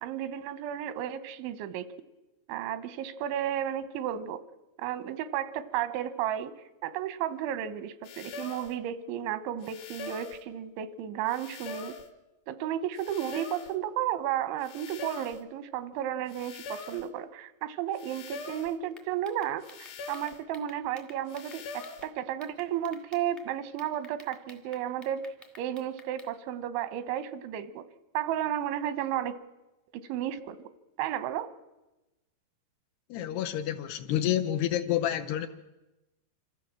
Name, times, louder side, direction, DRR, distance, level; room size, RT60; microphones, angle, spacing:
voice 1, 0.0-1.9 2.5-4.4 4.8-6.6 6.8-12.0 12.5-25.3 25.6-27.9 28.1-29.4 29.9-30.7 31.0-31.5, right 11 dB, 90° right, 3.3 m, -33 dB
sound 1, 8.0-8.8 9.6-10.4 11.3-12.1 13.0-13.8 14.6-15.4 16.3-17.1 17.9-18.8 19.6-20.4 21.3-22.1, left 4 dB, 60° left, 2.4 m, -43 dB
sound 2, 19.0-22.1 22.4-23.5 23.8-26.3, left 2 dB, ahead, 0.4 m, -53 dB
voice 2, 33.1-35.5, left 11 dB, 75° left, 2.5 m, -29 dB
26.0 x 14.5 x 7.4 m
omnidirectional pair, 5.2 m